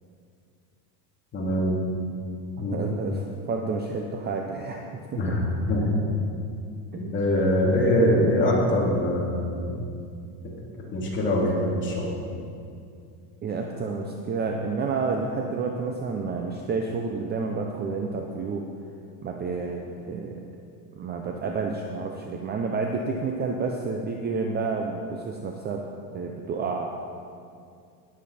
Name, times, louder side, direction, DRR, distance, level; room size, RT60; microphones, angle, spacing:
voice 1, 1.3-1.8 2.6-2.8 5.1-6.0 6.9-9.7 10.4-10.5 10.9-12.1, left 1 dB, 25° left, -4 dB, 2.9 m, -23 dB
voice 2, 2.7-4.9 5.1-5.4 13.4-18.7 19.2-20.4 21.0-25.8 26.1-26.9, right 4 dB, 20° right, 2 dB, 0.6 m, -30 dB
19.5 x 7.3 x 4.2 m, 2.4 s
cardioid pair, 150°, 46 cm